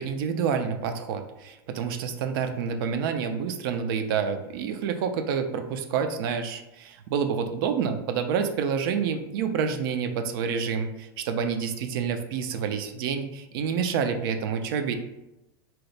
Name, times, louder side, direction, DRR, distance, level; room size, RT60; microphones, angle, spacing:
voice 1, 0.0-15.0, right 6 dB, 65° right, 7 dB, 0.4 m, -28 dB
2.8 x 2.1 x 3.2 m, 0.94 s
hypercardioid pair, 100°, 13 cm